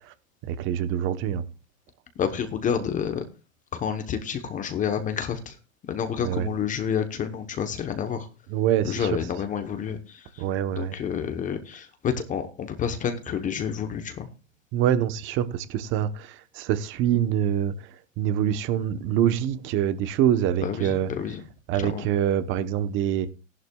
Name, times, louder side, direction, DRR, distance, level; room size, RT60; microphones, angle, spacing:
voice 1, 0.4-1.5 6.2-6.5 8.5-9.1 10.4-11.0 14.7-21.1 21.7-23.3, right 10 dB, 30° right, 0.9 m, -25 dB
voice 2, 2.2-3.2 3.7-5.6 5.9-8.3 8.8-10.4 10.8-14.3 20.6-21.4 21.7-22.1, left 7 dB, 20° left, 0.9 m, -29 dB
16.5 x 11.5 x 2.3 m
supercardioid pair, 145°, 40 cm